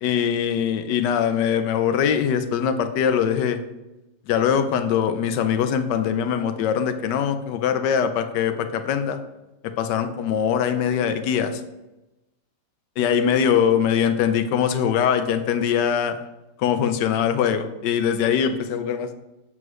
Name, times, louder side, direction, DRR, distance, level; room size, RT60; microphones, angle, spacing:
voice 1, 0.0-3.6 4.3-9.2 9.6-11.6 13.0-16.2 16.6-19.1, left 8 dB, 90° left, 9 dB, 1.3 m, -22 dB
7.8 x 7.8 x 3.1 m, 0.99 s
omnidirectional pair, 1.8 m